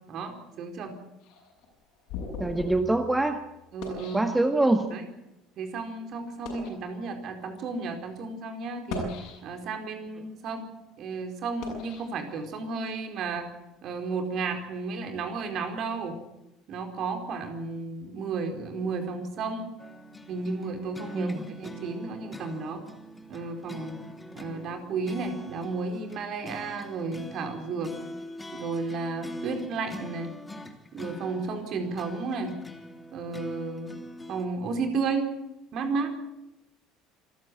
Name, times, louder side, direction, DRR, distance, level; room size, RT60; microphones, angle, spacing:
voice 1, 0.1-0.9 3.7-4.2 4.9-5.1 5.6-9.1 9.4-10.7 11.0-13.5 13.8-16.2 16.7-19.7 20.3-22.8 23.3-24.0 24.3-27.9 28.5-30.3 30.9-32.5 33.1-34.0 34.3-35.3 35.7-36.1, right 4 dB, 50° right, 5 dB, 4.5 m, -33 dB
sound 1, 1.2-4.9 5.6-5.8 6.3-6.8 7.6-7.8 8.7-9.8 10.3-12.8, left 4 dB, 60° left, 7.2 m, -40 dB
voice 2, 2.4-3.4 4.1-4.9 21.1-21.4, right 2 dB, 10° right, 7 dB, 1.7 m, -24 dB
sound 2, 19.8-34.4, left 1 dB, 15° left, 2.8 m, -43 dB
26.5 x 15.5 x 8.4 m, 0.90 s
figure-of-eight pair, 60°, 0 cm